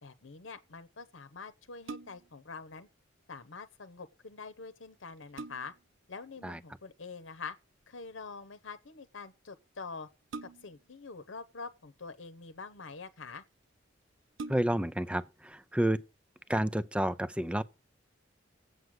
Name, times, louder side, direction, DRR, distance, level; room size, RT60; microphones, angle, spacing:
voice 1, 0.0-2.9 3.3-5.7 6.1-7.6 7.9-10.1 10.4-13.4, left 4 dB, 85° left, 0.9 m, -45 dB
sound 1, 1.8-2.4 4.4-4.5 5.0-5.9 7.5-7.8 10.3-10.9 11.9-12.6 13.3-13.4 13.7-13.8 14.3-15.0 15.5-15.6, right 3 dB, 85° right, 0.6 m, -45 dB
voice 2, 14.5-16.0 16.5-17.6, right 1 dB, 5° right, 0.5 m, -30 dB
8.0 x 6.4 x 7.7 m
head